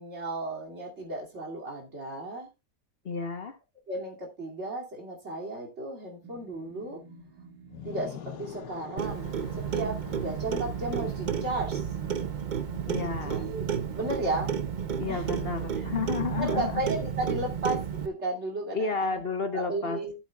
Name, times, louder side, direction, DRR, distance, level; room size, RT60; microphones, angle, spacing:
voice 1, 0.0-2.5 3.9-7.0 7.8-9.3 9.6-11.9 13.0-13.6 14.0-14.6 15.1-15.5 16.4-19.2 19.5-20.1, right 2 dB, 40° right, -1 dB, 2.9 m, -34 dB
voice 2, 3.0-3.5 12.9-13.4 15.0-16.8 18.7-20.0, left 4 dB, 40° left, 6 dB, 1.1 m, -31 dB
sound 1, 6.2-17.4, right 4 dB, 90° right, 2.2 m, -48 dB
sound 2, 7.6-12.6, left 9 dB, 75° left, 1.3 m, -46 dB
Clock, 9.0-18.1, right 8 dB, 75° right, 0.4 m, -32 dB
14.5 x 8.0 x 2.3 m, 0.25 s
omnidirectional pair, 1.8 m